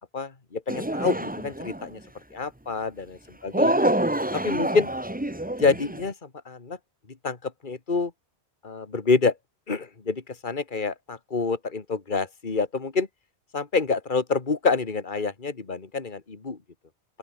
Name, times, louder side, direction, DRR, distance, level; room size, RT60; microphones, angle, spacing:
voice 1, 0.1-2.0 2.3-3.2 3.4-3.7 4.3-4.9 5.6-6.1 6.5-6.8 7.2-8.1 8.6-9.3 9.7-13.1 13.5-16.6, left 4 dB, 45° left, 2.2 m, -27 dB
sound 1, 0.7-1.9 3.5-6.1, right 1 dB, 10° right, 1.0 m, -26 dB
open air
omnidirectional pair, 1.2 m